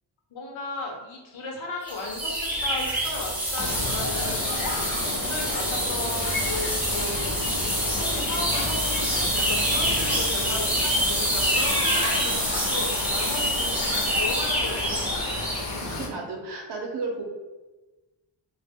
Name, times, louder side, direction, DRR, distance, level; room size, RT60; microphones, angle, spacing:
voice 1, 0.3-4.4 4.9-7.3 8.0-15.5, left 2 dB, 85° left, 0 dB, 0.8 m, -35 dB
sound 1, 1.9-15.7, equal, 5° right, 0.4 m, -26 dB
sound 2, 3.6-16.1, left 2 dB, 50° left, 0.5 m, -32 dB
voice 2, 15.8-17.2, right 3 dB, 60° right, 1 dB, 0.6 m, -33 dB
2.1 x 2.1 x 3.4 m, 1.2 s
wide cardioid pair, 155°, 46 cm